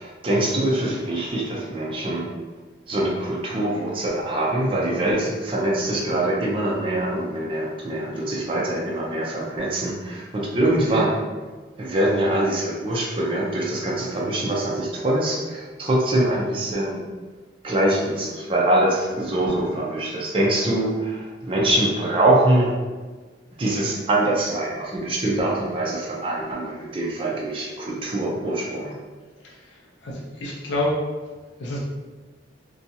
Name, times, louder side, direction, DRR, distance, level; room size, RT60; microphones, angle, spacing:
voice 1, 0.0-2.3 2.9-11.2 11.8-17.0 17.6-22.7 23.6-29.0, right 1 dB, 30° right, -3 dB, 0.5 m, -23 dB
voice 2, 29.4-31.0 31.6-31.8, left 1 dB, 75° left, -2 dB, 0.5 m, -28 dB
2.7 x 2.2 x 2.6 m, 1.3 s
head